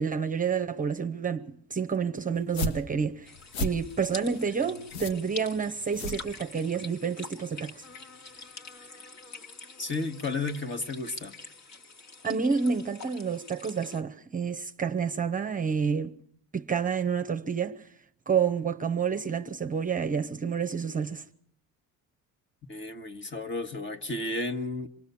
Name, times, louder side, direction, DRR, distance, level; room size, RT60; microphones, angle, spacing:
voice 1, 0.0-3.3 3.6-7.8 12.2-16.1 16.5-17.9 18.3-21.2, right 6 dB, 20° right, 0.9 m, -29 dB
sound 1, 2.4-6.9, left 2 dB, 85° left, 1.5 m, -36 dB
sound 2, 3.2-14.0, left 3 dB, 50° left, 2.3 m, -46 dB
voice 2, 9.8-11.3 22.7-24.9, left 3 dB, 30° left, 1.7 m, -33 dB
26.0 x 20.5 x 7.1 m
cardioid pair, 120°, 36 cm